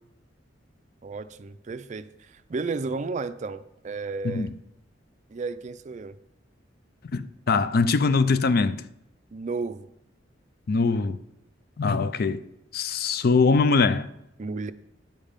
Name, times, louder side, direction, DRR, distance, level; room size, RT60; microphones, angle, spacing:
voice 1, 1.0-4.5 5.3-6.2 9.3-9.9 14.4-14.7, right 4 dB, 40° right, 0.4 m, -33 dB
voice 2, 7.1-8.8 10.7-11.2 11.8-12.4 12.7-14.1, left 4 dB, 55° left, 0.5 m, -22 dB
8.9 x 7.3 x 5.1 m
head